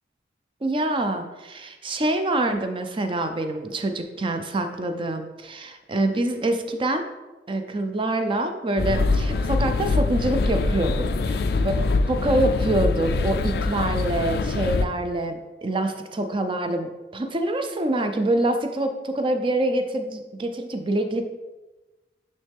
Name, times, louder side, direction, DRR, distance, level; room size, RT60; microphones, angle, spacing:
voice 1, 0.6-7.0 7.5-11.1 11.6-11.7 12.1-21.2, right 1 dB, 30° right, 7 dB, 0.5 m, -25 dB
sound 1, 8.8-14.9, left 3 dB, 60° left, 0.3 m, -24 dB
9.3 x 3.2 x 3.5 m, 1.2 s
head